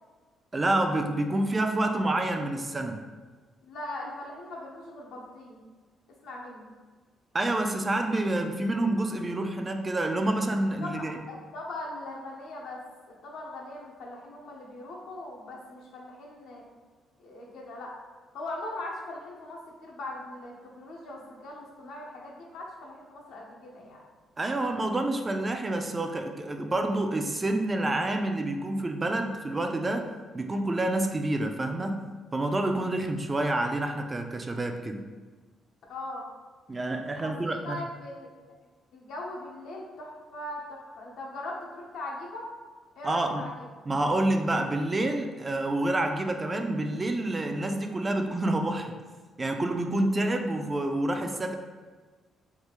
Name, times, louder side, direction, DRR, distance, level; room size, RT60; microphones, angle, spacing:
voice 1, 0.5-3.0 7.3-11.2 24.4-30.1 30.3-32.0 32.3-35.0 36.7-37.8 43.0-43.4 43.9-48.9 49.4-51.6, right 1 dB, 25° right, 5 dB, 0.3 m, -28 dB
voice 2, 3.6-5.6 6.2-6.7 10.8-12.8 13.1-16.6 17.2-17.9 18.3-24.0 32.7-32.9 35.9-36.2 37.2-37.3 37.6-38.3 38.9-42.5 43.0-43.7, left 1 dB, 80° left, -2 dB, 0.7 m, -40 dB
3.5 x 2.3 x 3.0 m, 1.4 s
cardioid pair, 90°, 0 cm